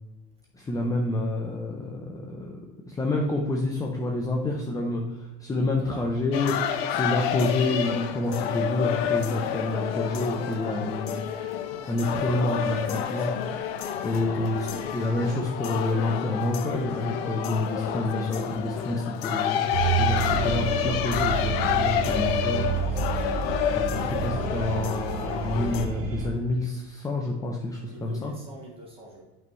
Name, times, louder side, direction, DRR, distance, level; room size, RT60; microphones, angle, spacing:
voice 1, 0.5-2.6 2.9-6.5 6.9-13.3 14.0-19.7 20.0-23.0 23.7-28.3, left 2 dB, 10° left, 0 dB, 0.6 m, -28 dB
sound 1, 6.3-25.9, left 9 dB, 85° left, 0.8 m, -29 dB
voice 2, 12.1-13.6 13.8-14.8 22.9-23.4 27.8-29.2, right 2 dB, 20° right, -3 dB, 2.3 m, -45 dB
sound 2, 19.7-26.3, right 7 dB, 85° right, 1.4 m, -29 dB
8.0 x 5.5 x 3.1 m, 1.1 s
supercardioid pair, 145°, 29 cm